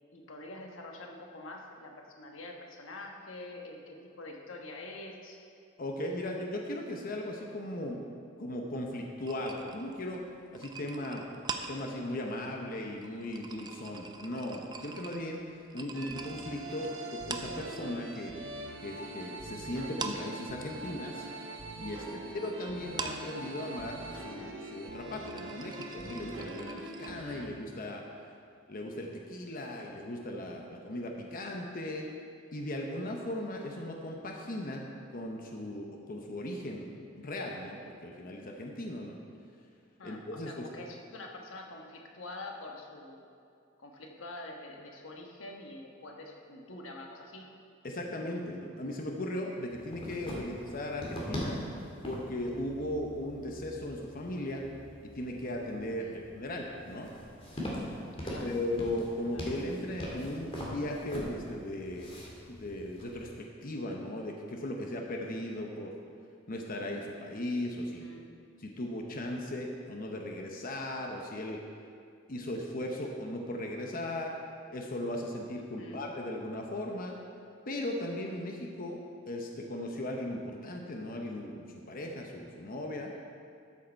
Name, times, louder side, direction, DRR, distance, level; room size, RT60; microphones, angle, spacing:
voice 1, 0.1-5.4 22.1-22.3 40.0-43.2 43.8-47.5 50.3-50.5 56.0-56.2 58.2-58.6 59.3-59.5 68.0-68.3 75.8-76.0, left 2 dB, 90° left, 1 dB, 1.2 m, -46 dB
voice 2, 5.8-8.0 8.4-10.3 10.5-11.2 11.7-15.4 15.7-18.4 18.8-21.3 21.8-28.0 28.7-32.1 32.5-34.9 35.1-36.9 37.2-39.2 40.0-40.7 47.8-51.6 52.0-54.6 55.0-57.1 58.4-62.1 62.5-65.9 66.5-68.1 68.6-71.6 72.3-74.4 74.7-77.2 77.7-79.0 79.3-83.1, left 1 dB, 45° left, 1 dB, 0.8 m, -37 dB
sound 1, 9.2-18.2 18.5-19.5 19.8-27.1, right 4 dB, 20° right, 0.5 m, -44 dB
sound 2, 15.9-27.5, right 2 dB, 80° right, 1.1 m, -43 dB
sound 3, 49.7-63.4, equal, 30° left, 2.0 m, -42 dB
13.0 x 6.5 x 4.5 m, 2.4 s
head